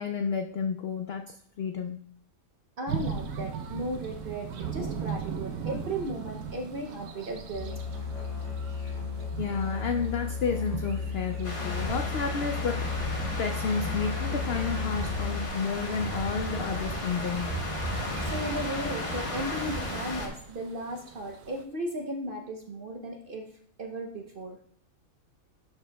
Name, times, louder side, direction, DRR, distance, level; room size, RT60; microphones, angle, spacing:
voice 1, 0.0-2.0 9.3-13.1 13.4-17.5, left 5 dB, 75° left, 5 dB, 0.5 m, -31 dB
voice 2, 2.8-8.1 18.2-23.5 23.8-24.6, right 1 dB, 55° right, 3 dB, 0.6 m, -36 dB
sound 1, 2.9-21.6, right 6 dB, 85° right, 1.2 m, -40 dB
Musical instrument, 7.5-15.5, left 5 dB, 55° left, 1.6 m, -34 dB
sound 2, 11.4-20.3, left 1 dB, 25° left, 1.0 m, -34 dB
11.5 x 4.8 x 2.2 m, 0.63 s
omnidirectional pair, 1.6 m